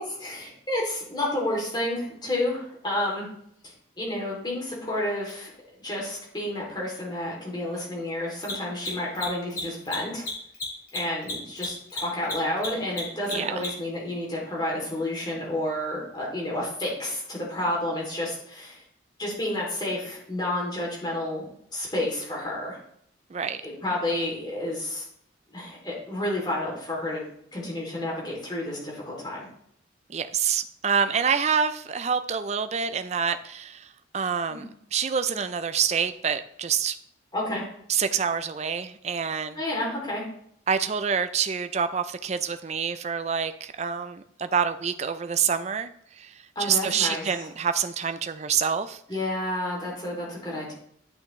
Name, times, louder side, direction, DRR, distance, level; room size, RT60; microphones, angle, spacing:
voice 1, 0.0-3.3 3.6-5.5 5.8-10.2 10.9-18.8 19.2-22.8 23.6-25.0 25.5-27.2 27.5-29.5 34.5-34.7 37.3-37.6 39.6-40.2 46.5-47.5 49.1-50.7, left 1 dB, 20° left, -4 dB, 2.8 m, -30 dB
Mechanisms, 5.3-5.4 8.3-13.9, left 2 dB, 50° left, 3.0 m, -33 dB
voice 2, 13.3-13.6 23.3-23.6 30.1-37.0 37.9-39.6 40.7-45.9 46.2-49.0, right 7 dB, 35° right, 10 dB, 0.4 m, -27 dB
10.5 x 6.2 x 3.1 m, 0.69 s
head